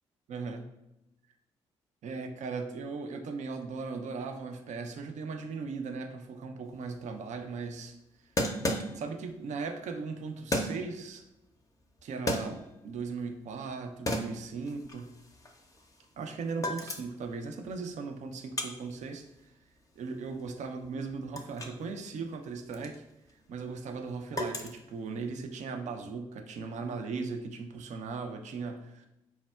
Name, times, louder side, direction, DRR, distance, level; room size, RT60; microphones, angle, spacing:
voice 1, 0.3-0.7 2.0-8.0 8.9-11.2 12.0-15.2 16.2-19.3 20.0-23.0 23.5-29.1, right 4 dB, 55° right, 6 dB, 0.4 m, -38 dB
sound 1, 6.7-6.8 7.0-7.1 8.4-9.3 10.5-11.0 12.0-12.9 13.4-13.7 14.1-16.2 16.5-17.3 17.6-21.8 22.1-25.4, left 1 dB, 25° left, 0.5 m, -35 dB
4.3 x 2.0 x 2.3 m, 0.92 s
hypercardioid pair, 40°, 15 cm